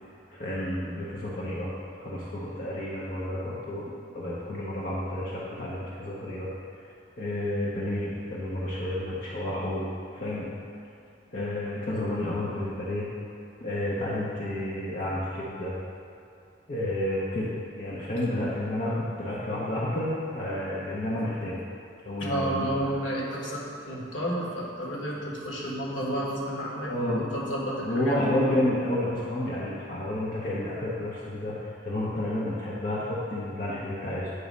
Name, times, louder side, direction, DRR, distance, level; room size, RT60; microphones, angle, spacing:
voice 1, 0.3-1.7 2.0-6.5 7.2-9.9 10.1-10.5 11.3-13.1 13.6-15.7 16.7-21.6 22.1-22.7 26.7-27.3 27.8-34.3, left 1 dB, 45° left, -7 dB, 0.8 m, -30 dB
voice 2, 22.2-28.2, equal, 80° left, -5 dB, 1.4 m, -31 dB
8.0 x 3.1 x 5.2 m, 2.6 s
head